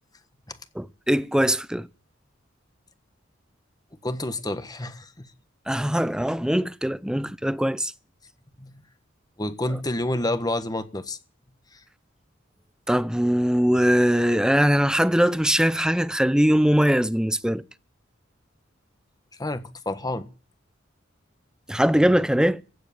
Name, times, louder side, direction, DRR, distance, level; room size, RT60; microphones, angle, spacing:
voice 1, 0.8-1.9 5.7-7.9 12.9-17.6 21.7-22.6, equal, 5° right, 0.6 m, -21 dB
voice 2, 4.0-5.3 7.1-7.3 8.6-8.7 9.4-11.2 11.7-11.8 19.4-20.3, left 1 dB, 20° left, 1.4 m, -29 dB
15.5 x 7.9 x 9.3 m
head